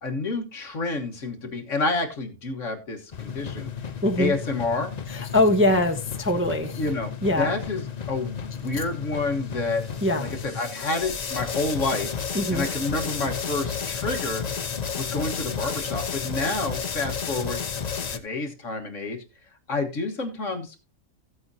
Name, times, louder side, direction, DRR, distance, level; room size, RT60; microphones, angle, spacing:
voice 1, 0.0-3.7 4.2-4.9 6.8-7.1 7.4-9.8 10.2-12.2 12.5-14.5 15.0-17.6 18.1-19.2 19.7-20.8, left 3 dB, 60° left, 1.7 m, -29 dB
sound 1, 3.1-18.2, left 6 dB, 40° left, 0.6 m, -32 dB
voice 2, 4.0-4.3 5.1-6.8 7.2-7.5 10.0-10.3 12.3-12.7, left 1 dB, 10° right, 0.7 m, -22 dB
15.0 x 7.8 x 2.7 m
omnidirectional pair, 1.5 m